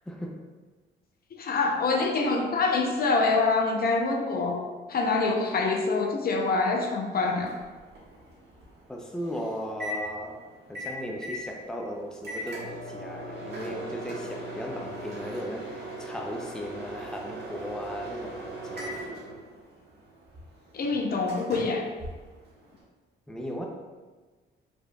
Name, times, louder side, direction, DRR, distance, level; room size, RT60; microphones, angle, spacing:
voice 1, 0.1-0.4 8.9-10.4 10.7-19.0 23.3-23.7, equal, 5° left, 0 dB, 0.6 m, -36 dB
voice 2, 1.4-7.5 20.7-21.9, left 3 dB, 50° left, 2 dB, 0.7 m, -25 dB
Microwave oven, 7.1-22.8, right 1 dB, 55° right, 1.5 m, -40 dB
5.0 x 4.4 x 2.3 m, 1.3 s
cardioid pair, 90°, 20 cm